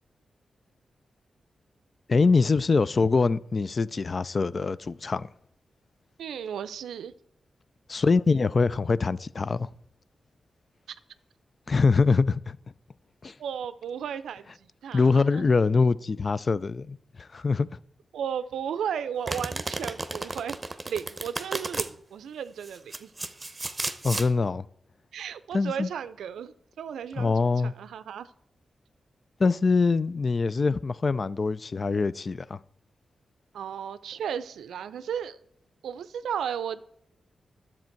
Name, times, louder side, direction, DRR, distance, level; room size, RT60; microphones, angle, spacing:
voice 1, 2.1-5.3 7.9-9.7 11.7-12.6 13.2-13.3 14.9-17.8 24.0-24.6 25.5-25.9 27.2-27.7 29.4-32.6, left 4 dB, 50° left, 0.4 m, -24 dB
voice 2, 6.2-7.1 13.4-15.4 18.1-23.1 25.1-28.3 33.5-35.4 35.8-36.8, right 8 dB, 85° right, 0.4 m, -34 dB
Domestic sounds home sounds, 19.3-21.9 22.6-24.3, right 2 dB, 30° right, 0.8 m, -33 dB
10.5 x 7.2 x 4.5 m
supercardioid pair, 45°, 0 cm